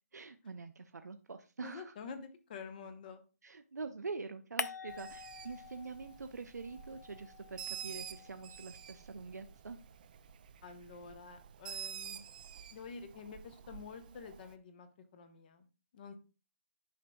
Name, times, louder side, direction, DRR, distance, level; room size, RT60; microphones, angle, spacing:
voice 1, 0.1-1.9 3.4-9.8, right 4 dB, 85° right, 7 dB, 0.6 m, -45 dB
voice 2, 1.6-3.2 10.6-12.2 12.7-14.9 15.1-15.7 15.9-16.1, left 5 dB, 30° left, 8 dB, 0.9 m, -48 dB
sound 1, 4.6-6.3 6.6-9.0, left 5 dB, 85° left, 0.5 m, -45 dB
Bird, 4.9-14.5, right 9 dB, 30° right, 0.4 m, -49 dB
10.5 x 5.0 x 2.3 m, 0.32 s
hypercardioid pair, 160°, 9 cm